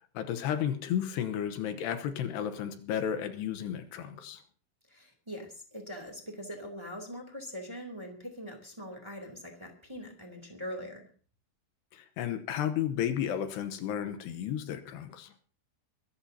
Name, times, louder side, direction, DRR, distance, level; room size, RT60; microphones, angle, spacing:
voice 1, 0.1-4.4 11.9-15.3, left 9 dB, 75° left, 2.8 m, -33 dB
voice 2, 4.9-11.1, equal, 10° right, 1.5 m, -42 dB
24.0 x 14.0 x 2.8 m
omnidirectional pair, 5.5 m